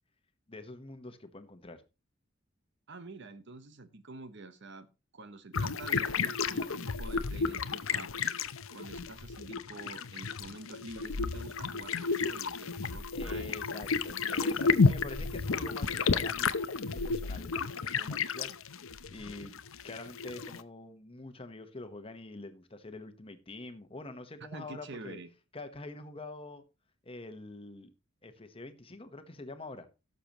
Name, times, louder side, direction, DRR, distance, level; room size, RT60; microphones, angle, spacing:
voice 1, 0.5-1.8 13.1-18.7 19.1-19.5 19.8-25.2 25.5-26.6 27.0-27.9 28.2-29.9, left 2 dB, 30° left, 1.1 m, -46 dB
voice 2, 2.9-4.9 5.1-8.1 8.7-13.6 14.2-14.9 24.5-25.3, right 3 dB, 60° right, 1.0 m, -47 dB
sound 1, 5.5-20.6, left 4 dB, 90° left, 0.7 m, -32 dB
17.0 x 6.8 x 3.0 m
head